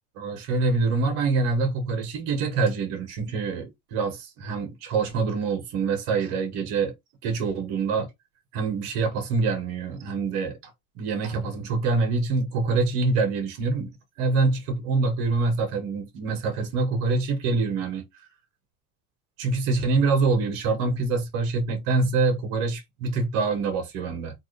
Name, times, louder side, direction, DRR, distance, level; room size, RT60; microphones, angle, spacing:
voice 1, 0.1-6.9 7.2-8.1 8.5-10.6 10.9-13.9 14.2-18.0 19.4-24.3, right 4 dB, 65° right, 1.8 m, -25 dB
3.5 x 2.5 x 3.4 m
supercardioid pair, 130°, 37 cm